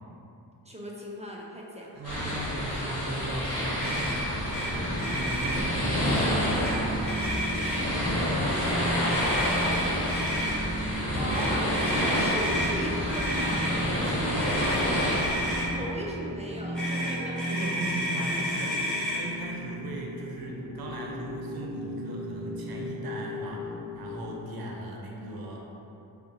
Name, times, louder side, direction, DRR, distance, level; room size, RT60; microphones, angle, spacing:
voice 1, 0.6-2.0 10.8-11.7 12.2-13.7 15.7-17.4, equal, 15° right, -3 dB, 0.5 m, -37 dB
sound 1, 2.0-15.7, equal, 30° left, 1.3 m, -29 dB
voice 2, 2.0-7.0 7.6-9.8 14.0-15.0 17.5-18.8 19.1-25.6, right 1 dB, 55° right, -1 dB, 0.7 m, -38 dB
Motor vehicle (road), 3.8-4.2 4.5-4.7 5.0-5.6 6.4-6.7 7.0-8.0 9.1-10.5 11.3-12.7 13.1-13.7 14.4-15.7 16.7-19.2, equal, ahead, 0.8 m, -31 dB
sound 2, 4.7-24.4, right 1 dB, 80° left, 1.3 m, -36 dB
2.6 x 2.5 x 3.9 m, 2.8 s
supercardioid pair, 45°, 44 cm